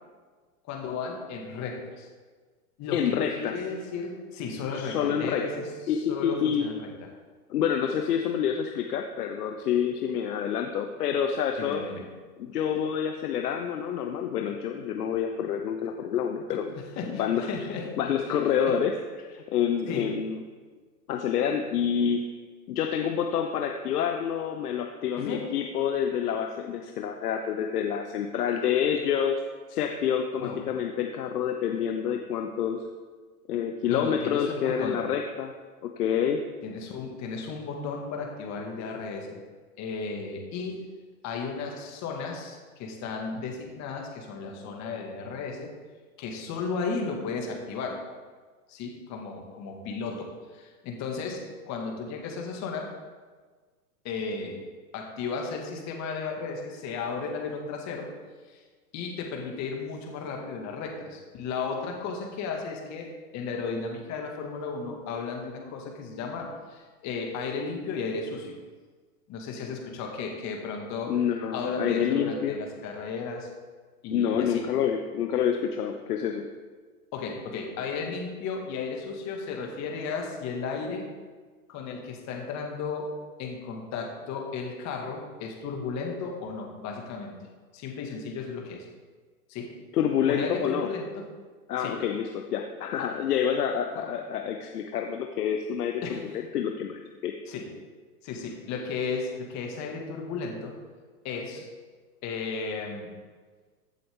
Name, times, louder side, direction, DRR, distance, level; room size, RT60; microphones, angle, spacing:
voice 1, 0.7-2.1 2.8-6.9 11.6-12.0 16.5-18.0 18.3-18.7 19.9-20.1 25.2-25.5 30.4-30.6 33.9-35.0 36.6-39.4 39.8-40.9 41.2-45.7 46.2-48.0 48.7-51.4 51.7-52.9 54.0-54.6 54.9-58.1 58.5-58.6 58.9-63.1 63.3-68.5 69.3-71.1 71.5-73.5 74.0-74.6 77.1-81.1 81.7-83.1 83.4-87.4 87.7-88.9 89.5-89.7 90.3-91.2 91.8-91.9 93.9-94.1 96.0-96.4 97.5-97.6 98.2-100.7 101.2-101.7 102.2-103.1, left 4 dB, 35° left, 1 dB, 2.2 m, -34 dB
voice 2, 2.9-3.6 4.7-5.5 5.9-6.7 7.5-11.9 12.4-16.7 17.1-17.5 18.0-20.4 21.1-22.2 22.7-29.4 29.7-32.8 33.5-35.5 35.8-36.4 71.1-72.6 74.1-76.5 89.9-90.9 91.7-96.2 96.5-97.3, left 8 dB, 75° left, 4 dB, 1.0 m, -28 dB
15.0 x 7.6 x 3.8 m, 1.4 s
hypercardioid pair, 115°, 47 cm